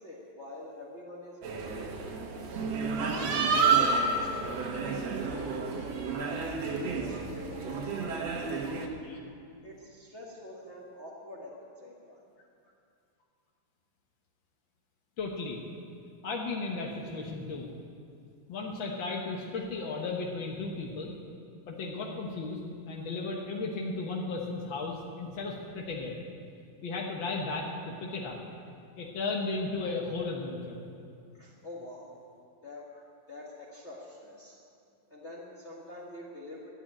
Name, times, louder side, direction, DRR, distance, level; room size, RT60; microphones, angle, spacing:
voice 1, 0.0-2.3 3.0-8.7 9.6-12.2 31.4-32.2 32.6-32.8 33.3-34.6 35.1-36.7, left 1 dB, 40° left, -4 dB, 0.9 m, -46 dB
sound 1, 1.4-8.9, right 4 dB, 60° right, 2.0 m, -30 dB
voice 2, 15.2-15.6 16.2-17.7 18.5-21.1 21.7-22.6 22.9-26.1 26.8-28.4 29.0-30.8, left 3 dB, 75° left, -1 dB, 1.1 m, -35 dB
13.0 x 8.6 x 9.9 m, 2.4 s
omnidirectional pair, 4.0 m